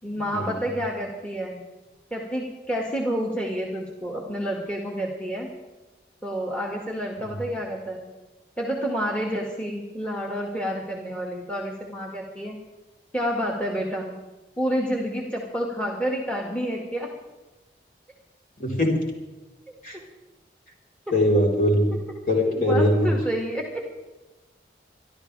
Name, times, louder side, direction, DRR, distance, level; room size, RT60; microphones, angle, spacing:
voice 1, 0.0-1.7 2.1-5.5 6.2-8.1 8.6-12.6 13.1-14.2 14.6-17.1 22.5-23.8, equal, 5° left, -1 dB, 1.9 m, -29 dB
voice 2, 18.6-19.0 19.8-20.0 21.1-22.0 22.3-23.1, left 1 dB, 50° left, -1 dB, 4.0 m, -21 dB
26.0 x 12.5 x 3.4 m, 1.1 s
head